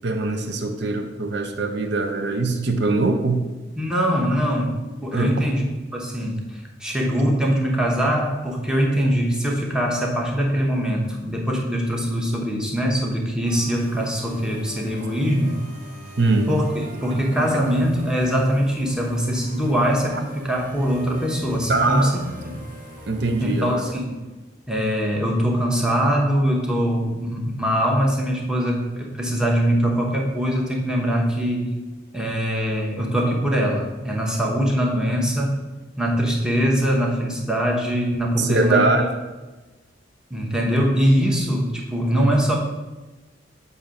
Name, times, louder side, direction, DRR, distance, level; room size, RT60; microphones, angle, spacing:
voice 1, 0.0-3.5 5.1-5.3 16.2-16.5 17.1-17.6 20.1-20.2 21.7-22.1 23.1-23.8 38.4-39.0, right 3 dB, 65° right, 5 dB, 0.6 m, -22 dB
voice 2, 3.8-5.6 5.9-15.6 16.5-22.7 23.4-24.2 24.7-31.7 32.1-35.6 36.0-38.9 40.3-42.6, equal, 5° right, -1 dB, 0.9 m, -22 dB
sound 1, 13.4-24.3, right 1 dB, 45° right, 0.9 m, -41 dB
7.2 x 2.7 x 5.1 m, 1.2 s
head